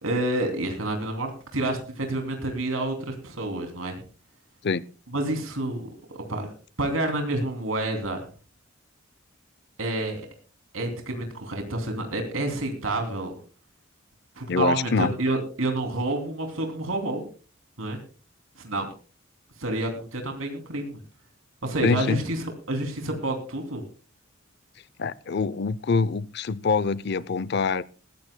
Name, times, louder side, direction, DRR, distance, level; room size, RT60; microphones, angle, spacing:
voice 1, 0.0-4.0 5.1-6.5 6.8-8.3 9.8-10.2 10.7-13.4 14.4-17.2 17.8-18.0 18.6-18.9 19.6-21.0 21.6-23.8, right 2 dB, 80° right, 2.9 m, -29 dB
voice 2, 14.5-15.1 21.8-22.2 25.0-27.8, left 4 dB, 55° left, 0.5 m, -25 dB
20.5 x 15.0 x 2.2 m
head